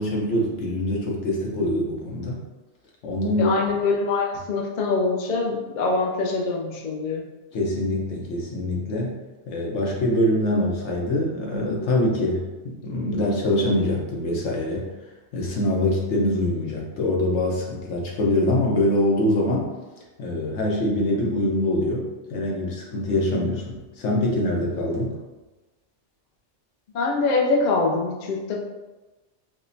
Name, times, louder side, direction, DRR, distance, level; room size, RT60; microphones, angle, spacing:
voice 1, 0.0-2.4 3.0-3.5 7.5-9.2 9.5-14.9 15.3-19.7 20.2-25.2, left 1 dB, 75° left, -2 dB, 1.1 m, -24 dB
voice 2, 3.3-7.2 26.9-28.6, left 3 dB, 55° left, 0 dB, 0.5 m, -24 dB
4.8 x 2.1 x 2.6 m, 1.2 s
omnidirectional pair, 1.2 m